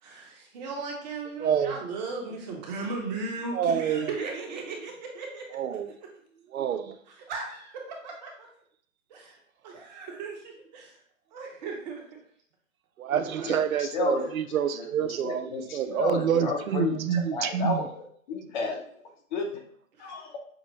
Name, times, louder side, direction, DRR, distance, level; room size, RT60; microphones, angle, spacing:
voice 1, 0.0-5.4 7.1-8.5 9.1-9.4 9.6-11.0 11.3-12.0 13.3-13.5 14.2-14.3 20.0-20.1, right 3 dB, 30° right, 0.9 m, -37 dB
voice 2, 1.4-1.8 3.5-4.1 5.5-5.9 6.5-7.0 13.0-17.8, right 8 dB, 90° right, 0.5 m, -27 dB
voice 3, 13.4-14.3 14.7-17.1 17.3-18.8 19.3-19.5 20.0-20.4, left 3 dB, 35° left, 0.8 m, -31 dB
5.9 x 2.0 x 3.0 m
hypercardioid pair, 135°, 40 cm